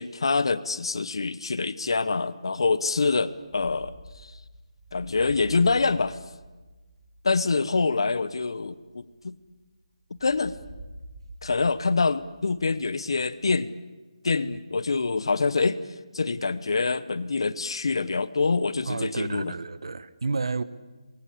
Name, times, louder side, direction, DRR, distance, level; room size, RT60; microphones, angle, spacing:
voice 1, 0.0-3.9 4.2-4.3 4.9-6.2 7.2-9.4 10.2-10.5 11.4-13.7 14.2-15.8 16.1-19.5, left 4 dB, 50° left, 1.0 m, -25 dB
sound 1, 3.3-9.7 10.1-13.3, right 1 dB, 20° right, 4.9 m, -47 dB
voice 2, 18.9-20.6, right 4 dB, 55° right, 1.0 m, -30 dB
24.0 x 23.0 x 8.5 m
hypercardioid pair, 180°, 3 cm